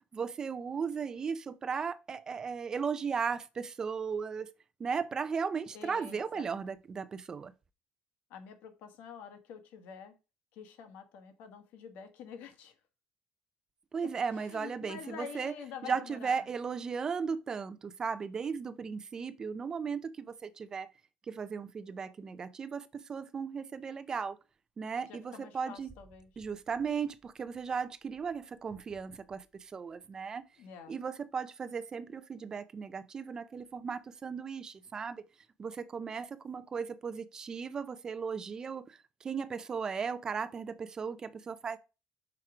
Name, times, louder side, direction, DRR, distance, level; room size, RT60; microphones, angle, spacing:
voice 1, 0.1-4.5 4.8-7.5 13.9-15.5 15.8-20.9 21.3-24.4 24.8-25.9 26.4-30.4 30.9-35.2 35.6-41.8, right 6 dB, 25° right, 0.5 m, -36 dB
voice 2, 5.7-6.7 8.3-10.1 10.5-12.7 14.3-16.5 25.1-26.3 30.6-31.0, left 7 dB, 75° left, 1.5 m, -47 dB
5.9 x 4.7 x 4.9 m
cardioid pair, 180°, 3 cm